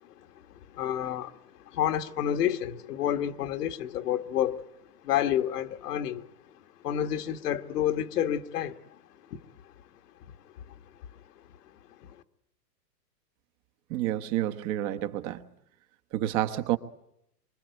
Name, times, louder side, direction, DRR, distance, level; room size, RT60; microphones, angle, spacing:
voice 1, 0.0-1.4 1.7-4.7 5.0-6.3 6.8-8.8 9.3-9.4 11.1-11.2 12.0-12.2, left 10 dB, 70° left, 1.5 m, -29 dB
voice 2, 13.9-15.4 16.1-16.8, right 13 dB, 35° right, 1.3 m, -29 dB
26.0 x 24.5 x 9.3 m
hypercardioid pair, 135°, 49 cm